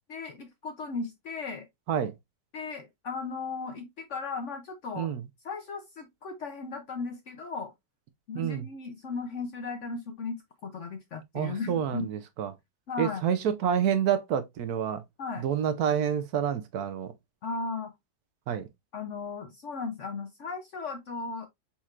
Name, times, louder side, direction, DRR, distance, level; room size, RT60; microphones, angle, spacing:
voice 1, 0.1-1.7 2.5-5.1 5.4-7.7 8.3-12.1 12.9-13.2 15.2-15.5 17.4-17.9 18.9-21.5, left 4 dB, 60° left, 0.8 m, -36 dB
voice 2, 8.3-8.6 11.3-12.5 13.0-15.0 15.4-17.1 18.5-18.7, right 9 dB, 70° right, 1.0 m, -28 dB
4.3 x 4.3 x 2.4 m
omnidirectional pair, 1.8 m